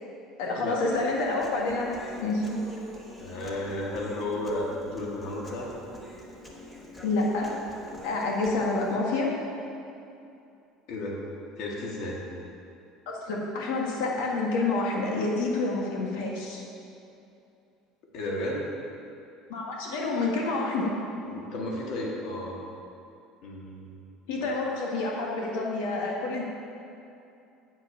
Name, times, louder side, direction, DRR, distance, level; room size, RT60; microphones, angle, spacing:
voice 1, 0.4-2.6 7.0-7.6 8.0-9.3 13.1-16.6 19.5-20.9 24.3-26.4, left 3 dB, 90° left, -2 dB, 1.6 m, -28 dB
Human voice, 0.9-9.0, equal, 10° left, 1.1 m, -45 dB
voice 2, 3.2-5.7 10.9-11.2 11.6-12.2 18.1-18.7 21.3-22.6 23.4-24.0, left 1 dB, 50° left, -2 dB, 1.6 m, -33 dB
8.3 x 8.0 x 5.7 m, 2.7 s
cardioid pair, 165°, 0 cm